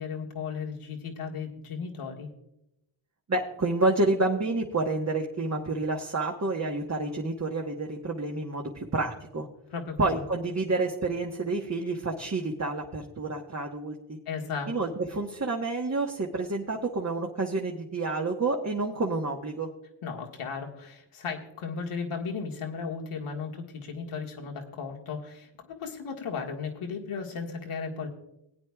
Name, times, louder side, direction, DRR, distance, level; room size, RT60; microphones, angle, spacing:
voice 1, 0.0-2.3 9.7-10.2 14.3-14.7 20.0-28.1, left 5 dB, 85° left, 1 dB, 1.9 m, -35 dB
voice 2, 3.3-9.5 10.0-14.2 14.7-19.7, right 2 dB, 30° right, 0 dB, 1.3 m, -29 dB
19.5 x 9.2 x 2.4 m, 0.84 s
cardioid pair, 70°, 50 cm